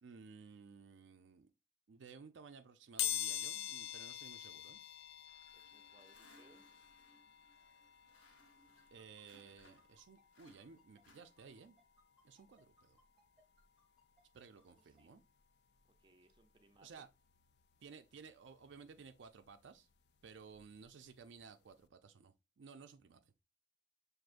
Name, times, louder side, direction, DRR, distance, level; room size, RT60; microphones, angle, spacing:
voice 1, 0.0-1.5 1.9-4.8 8.9-11.8 12.2-13.0 14.3-15.2 16.8-17.1 17.8-19.9 20.2-23.3, right 5 dB, 80° right, 0.4 m, -56 dB
sound 1, 3.0-13.7 14.1-14.2 15.4-15.5 15.8-17.8 18.2-20.8 21.2-21.4 21.7-21.8, left 11 dB, 60° left, 0.3 m, -46 dB
sound 2, 5.3-10.0 10.3-11.8, left 1 dB, 80° left, 1.1 m, -67 dB
voice 2, 5.5-6.6 14.7-15.1 16.0-17.1, right 2 dB, 25° right, 0.5 m, -68 dB
sound 3, 8.8-15.0, equal, 5° right, 1.0 m, -71 dB
6.1 x 2.6 x 2.5 m
head